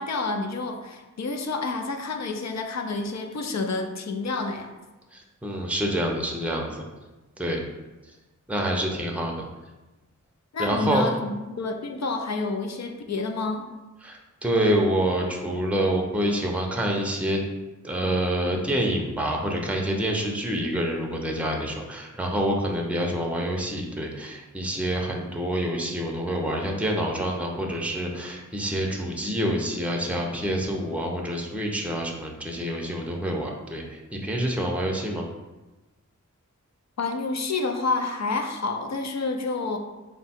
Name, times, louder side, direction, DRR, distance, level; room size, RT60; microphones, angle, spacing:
voice 1, 0.0-4.7 10.5-13.7 37.0-39.8, left 3 dB, 60° left, 5 dB, 0.5 m, -29 dB
voice 2, 5.1-6.9 7.4-7.6 8.5-9.3 10.6-11.1 14.0-17.4 17.8-35.2, right 1 dB, 5° right, 0 dB, 0.6 m, -27 dB
3.7 x 2.2 x 4.2 m, 1.1 s
wide cardioid pair, 60°, 31 cm